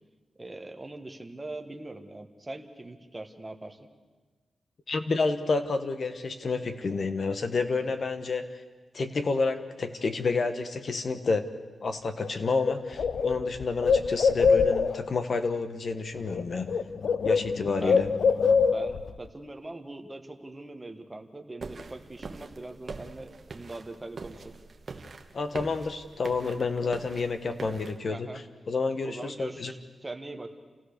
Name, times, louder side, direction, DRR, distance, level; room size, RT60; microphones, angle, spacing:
voice 1, 0.4-3.9 17.8-24.5 28.1-28.4 29.0-29.8 30.0-30.5, right 2 dB, 15° right, 5 dB, 1.4 m, -41 dB
voice 2, 4.9-8.5 8.9-11.5 11.8-16.8 17.2-18.1 25.3-29.7, left 4 dB, 45° left, 8 dB, 1.3 m, -29 dB
Bird, 12.2-12.3 12.6-15.1 16.2-16.4 16.7-19.1, left 5 dB, 70° left, 0.6 m, -24 dB
sound 1, 21.6-28.0, right 4 dB, 40° right, 1.3 m, -43 dB
28.5 x 15.5 x 6.8 m, 1.3 s
wide cardioid pair, 170°, 0 cm